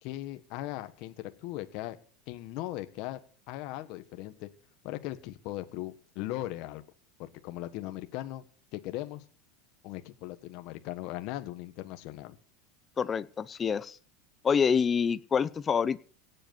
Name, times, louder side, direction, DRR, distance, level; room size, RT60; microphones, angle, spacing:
voice 1, 0.0-2.0 2.3-3.2 3.5-4.5 4.8-6.8 7.2-8.4 8.7-9.2 9.8-12.4, left 15 dB, 55° left, 9 dB, 1.5 m, -38 dB
voice 2, 13.0-14.0 14.4-16.0, left 6 dB, 20° left, 16 dB, 0.8 m, -27 dB
17.5 x 8.1 x 6.9 m, 0.43 s
supercardioid pair, 140°, 0 cm